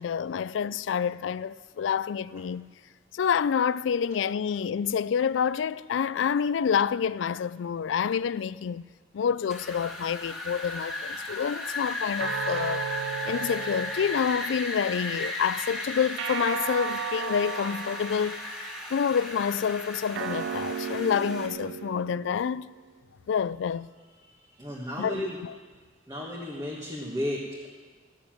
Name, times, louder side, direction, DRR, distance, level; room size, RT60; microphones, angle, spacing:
voice 1, 0.0-2.7 3.1-8.9 9.1-12.8 13.3-18.4 18.9-22.7 23.3-23.9 25.0-25.5, left 7 dB, 90° left, 0.3 m, -28 dB
Wind, 9.5-21.5, left 2 dB, ahead, 2.1 m, -36 dB
sound 1, 12.2-14.8 16.2-18.7 20.1-22.8, right 8 dB, 85° right, 0.3 m, -35 dB
voice 2, 24.2-25.4 26.1-27.7, equal, 20° right, 1.5 m, -34 dB
15.5 x 6.9 x 9.0 m
head